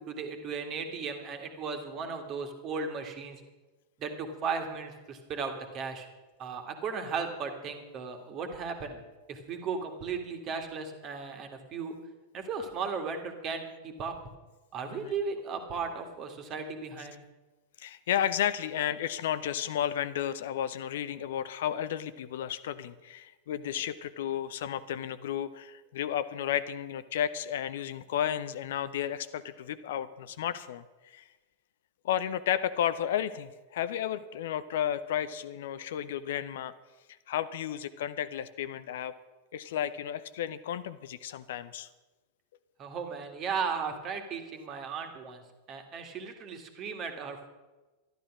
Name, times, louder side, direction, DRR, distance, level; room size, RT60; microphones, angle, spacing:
voice 1, 0.0-3.4 4.0-6.1 6.4-9.0 9.3-12.0 12.3-14.1 14.7-17.2 42.8-45.4 45.7-47.5, right 5 dB, 35° right, 6 dB, 1.9 m, -36 dB
voice 2, 17.8-31.2 32.0-36.7 37.3-39.1 39.5-41.9, left 10 dB, 55° left, 14 dB, 0.6 m, -33 dB
12.5 x 12.0 x 6.1 m, 1.2 s
figure-of-eight pair, 90°, 0 cm